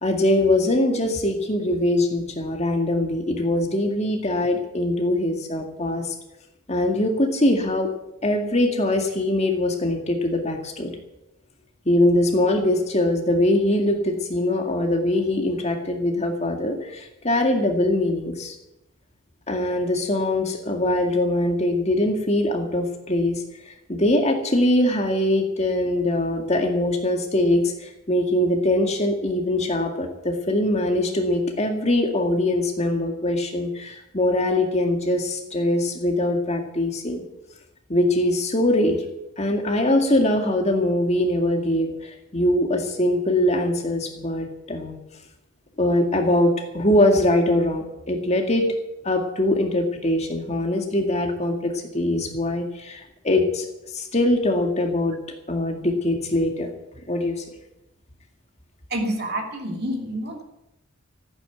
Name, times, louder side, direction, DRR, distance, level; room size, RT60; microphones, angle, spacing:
voice 1, 0.0-6.1 6.7-7.9 8.2-11.0 11.9-18.6 19.5-37.2 37.9-39.0 39.4-45.0 45.8-48.7 49.0-55.2 55.5-56.7 57.1-57.5, left 1 dB, 30° left, 4 dB, 2.0 m, -22 dB
voice 2, 58.9-60.4, right 1 dB, 50° right, 2 dB, 2.8 m, -28 dB
15.0 x 9.6 x 8.3 m, 0.89 s
head